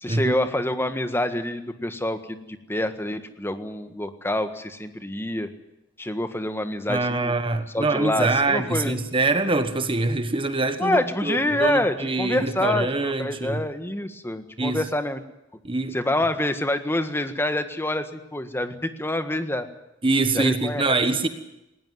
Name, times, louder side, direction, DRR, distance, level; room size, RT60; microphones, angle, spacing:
voice 1, 0.0-5.5 6.0-7.3 7.7-9.0 10.8-15.2 15.9-19.7 20.3-20.8, left 1 dB, 10° left, 9 dB, 1.6 m, -26 dB
voice 2, 6.9-13.6 14.6-14.8 15.6-16.0 20.0-21.3, right 3 dB, 30° right, 9 dB, 1.4 m, -24 dB
19.5 x 19.0 x 9.5 m, 0.90 s
head